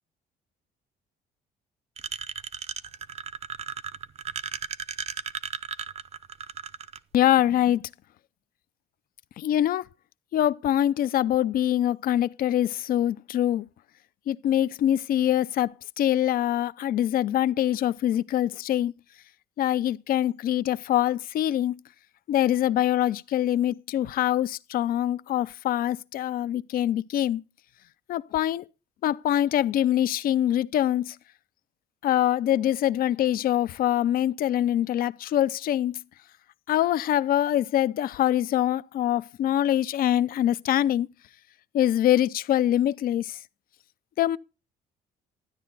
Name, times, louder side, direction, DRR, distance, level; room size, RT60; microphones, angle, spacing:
sound 1, 2.0-7.0, right 8 dB, 40° right, 0.6 m, -35 dB
voice 1, 7.1-7.8 9.4-9.8 10.3-13.7 14.3-18.9 19.6-21.8 22.3-27.4 28.1-28.6 29.0-31.2 32.0-36.0 36.7-41.1 41.7-43.4 44.2-44.4, left 12 dB, 60° left, 0.6 m, -24 dB
13.0 x 10.0 x 4.0 m
cardioid pair, 110°, 17 cm